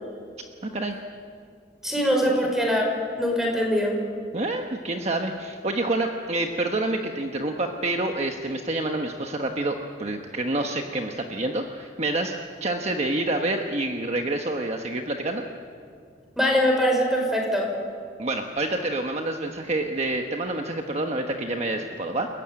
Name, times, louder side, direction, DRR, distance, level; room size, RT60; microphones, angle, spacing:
voice 1, 1.8-2.9 3.2-4.0 16.4-17.7, equal, ahead, 1 dB, 5.4 m, -22 dB
voice 2, 4.3-12.3 12.6-15.4 18.2-22.3, right 2 dB, 35° right, 3 dB, 1.2 m, -27 dB
29.5 x 15.0 x 9.4 m, 2.2 s
head